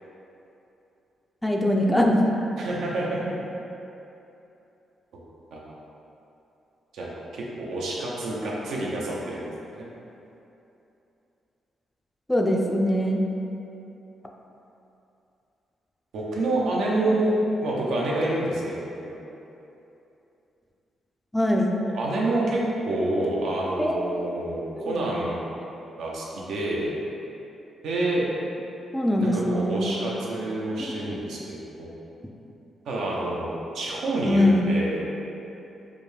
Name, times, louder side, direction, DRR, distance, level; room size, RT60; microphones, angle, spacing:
voice 1, 1.4-2.2 12.3-13.2 21.3-21.8 23.8-24.0 24.8-24.9 28.9-29.9 30.8-30.9 34.2-34.7, left 1 dB, 5° left, 0 dB, 0.4 m, -22 dB
voice 2, 2.6-3.4 5.5-5.6 6.9-9.4 9.7-9.9 16.1-17.3 17.6-18.8 19.0-19.1 21.9-25.4 26.0-26.9 27.8-28.3 29.2-31.9 32.9-35.0, right 2 dB, 80° right, -4 dB, 0.7 m, -28 dB
5.0 x 2.2 x 3.2 m, 2.9 s
cardioid pair, 85°, 0 cm